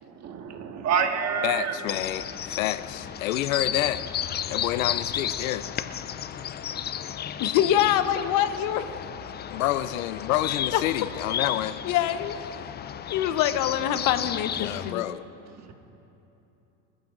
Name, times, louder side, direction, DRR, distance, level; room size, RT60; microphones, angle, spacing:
voice 1, 0.0-1.8 15.5-15.7, right 7 dB, 40° right, 4 dB, 1.8 m, -28 dB
voice 2, 1.4-4.0 4.5-5.7 9.5-11.8 14.6-15.3, left 14 dB, 80° left, 14 dB, 0.6 m, -28 dB
sound 1, 1.9-14.9, left 9 dB, 25° left, 0.5 m, -33 dB
voice 3, 7.4-8.9 10.3-10.4 10.7-10.8 11.8-12.4 13.1-15.1, left 11 dB, 55° left, 10 dB, 1.1 m, -24 dB
24.5 x 15.0 x 2.6 m, 2.9 s
hypercardioid pair, 85°, 39 cm